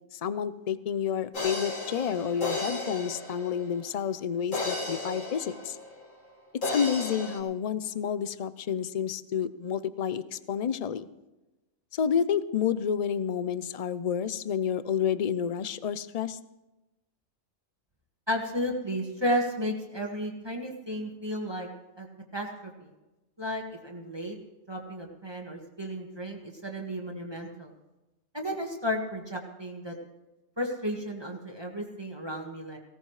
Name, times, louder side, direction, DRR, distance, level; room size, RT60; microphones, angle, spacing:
voice 1, 0.1-5.8 6.6-11.1 11.9-16.4, left 8 dB, 50° left, 14 dB, 0.4 m, -29 dB
sound 1, 1.3-3.9 4.5-6.3 6.6-7.4, left 2 dB, 80° left, 2.6 m, -34 dB
voice 2, 18.3-21.7 22.0-22.1 22.3-22.9 23.4-24.4 24.7-27.7 28.3-29.9 30.6-32.8, equal, 20° right, 0 dB, 1.8 m, -33 dB
19.0 x 17.0 x 3.2 m, 1.0 s
omnidirectional pair, 1.3 m